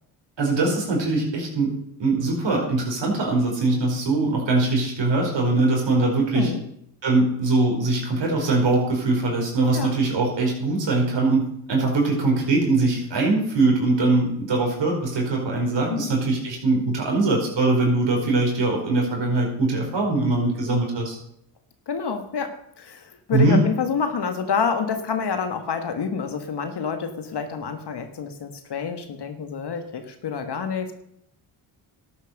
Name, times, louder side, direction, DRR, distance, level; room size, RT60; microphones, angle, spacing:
voice 1, 0.4-1.7 2.0-6.5 7.0-11.4 11.7-21.2 23.3-23.6, right 2 dB, 55° right, 0 dB, 4.7 m, -22 dB
voice 2, 21.9-30.9, left 6 dB, 50° left, 7 dB, 1.7 m, -28 dB
12.0 x 8.3 x 6.5 m, 0.73 s
supercardioid pair, 65°, 50 cm